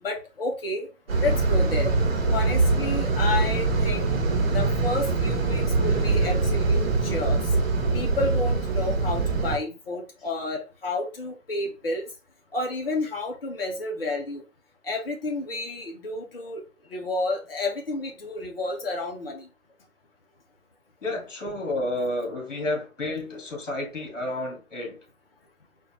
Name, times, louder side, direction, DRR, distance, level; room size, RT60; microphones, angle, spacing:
voice 1, 0.0-0.9 1.2-1.9 2.3-4.2 4.5-7.4 7.9-12.1 12.5-14.4 14.8-16.6 16.9-19.5, left 2 dB, 45° left, 1.3 m, -30 dB
sound 1, 1.1-9.6, right 3 dB, 45° right, 1.1 m, -23 dB
voice 2, 21.0-25.0, left 1 dB, 60° left, 2.1 m, -30 dB
4.3 x 2.6 x 3.0 m
hypercardioid pair, 160°, 42 cm